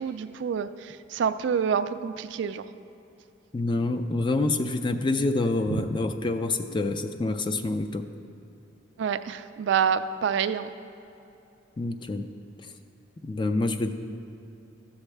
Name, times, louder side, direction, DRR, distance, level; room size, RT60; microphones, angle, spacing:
voice 1, 0.0-2.6 5.7-5.9 9.0-10.7, right 7 dB, 60° right, 11 dB, 0.3 m, -27 dB
voice 2, 3.5-8.0 11.8-12.3 13.2-13.9, left 2 dB, 25° left, 8 dB, 0.3 m, -27 dB
13.0 x 7.2 x 3.3 m, 2.8 s
head